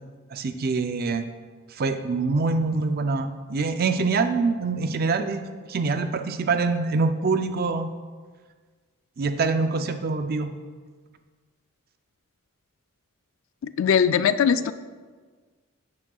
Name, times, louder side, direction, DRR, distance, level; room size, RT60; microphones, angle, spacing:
voice 1, 0.3-1.2 1.7-5.4 5.7-7.9 9.2-10.5, right 4 dB, 45° right, 8 dB, 0.4 m, -25 dB
voice 2, 13.8-14.7, left 7 dB, 60° left, 13 dB, 0.3 m, -20 dB
9.8 x 7.4 x 2.3 m, 1.5 s
head